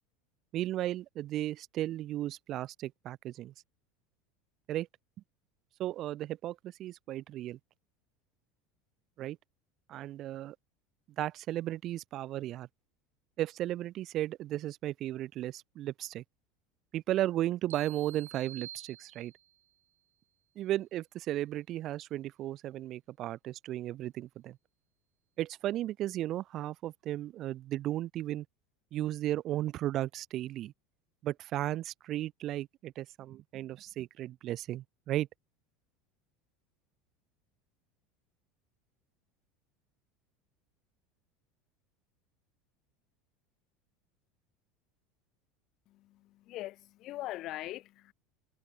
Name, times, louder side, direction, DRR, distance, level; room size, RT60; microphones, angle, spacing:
voice 1, 0.5-3.5 4.7-4.9 5.8-7.6 9.2-9.4 9.9-10.6 11.2-12.7 13.4-16.2 16.9-19.3 20.6-24.6 25.4-28.4 28.9-30.7 31.2-35.3, right 14 dB, 50° right, 0.6 m, -35 dB
sound 1, 17.7-19.6, right 12 dB, 80° right, 3.3 m, -49 dB
voice 2, 45.9-48.1, left 16 dB, 55° left, 1.4 m, -42 dB
hypercardioid pair, 80°, 0 cm